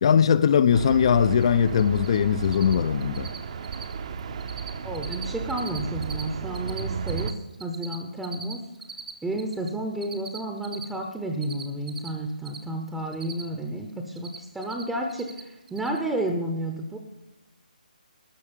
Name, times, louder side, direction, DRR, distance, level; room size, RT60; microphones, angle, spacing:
voice 1, 0.0-3.3, left 8 dB, 40° left, 0.4 m, -20 dB
sound 1, 0.7-7.3, right 6 dB, 40° right, 0.7 m, -33 dB
Cricket, 1.3-1.4 1.7-2.2 2.4-2.7 3.0-3.4 3.6-4.7 4.9-6.2 6.5-9.7 10.0-12.6 12.9-13.7 13.9-14.8 15.1-15.4 15.7-16.0, right 6 dB, 65° right, 1.4 m, -40 dB
voice 2, 4.8-7.3 7.6-8.6 9.2-17.0, right 1 dB, 5° right, 0.7 m, -31 dB
12.5 x 6.4 x 6.8 m
hypercardioid pair, 160°, 5 cm